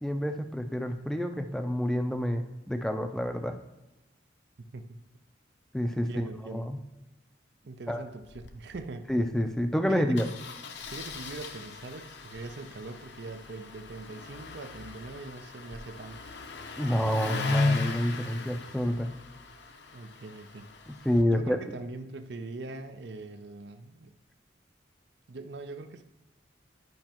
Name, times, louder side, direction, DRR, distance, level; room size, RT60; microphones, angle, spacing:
voice 1, 0.0-3.6 5.7-6.8 7.9-8.1 9.1-10.3 16.8-19.1 20.9-21.6, equal, 5° left, 6 dB, 0.4 m, -28 dB
voice 2, 5.9-6.7 7.6-9.1 9.9-10.3 10.9-16.3 19.9-20.7 21.3-24.1 25.3-26.0, right 3 dB, 65° right, 9 dB, 0.5 m, -42 dB
Engine starting, 8.2-8.5 8.7-8.8 9.1-9.3 10.2-21.2, left 3 dB, 65° left, 0.7 m, -36 dB
11.0 x 5.2 x 2.9 m, 1.0 s
head